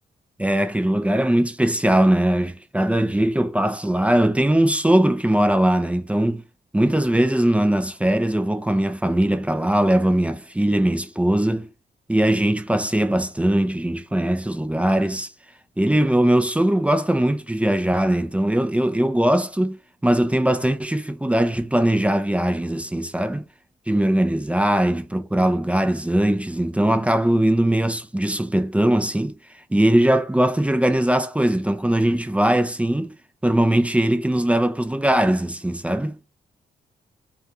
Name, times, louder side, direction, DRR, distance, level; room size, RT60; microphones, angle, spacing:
voice 1, 0.4-6.4 6.7-11.7 12.1-15.3 15.8-19.8 20.0-23.4 23.9-29.4 29.7-33.1 33.4-36.2, right 1 dB, 5° right, 0.4 m, -20 dB
2.3 x 2.3 x 2.8 m
cardioid pair, 70°, 18 cm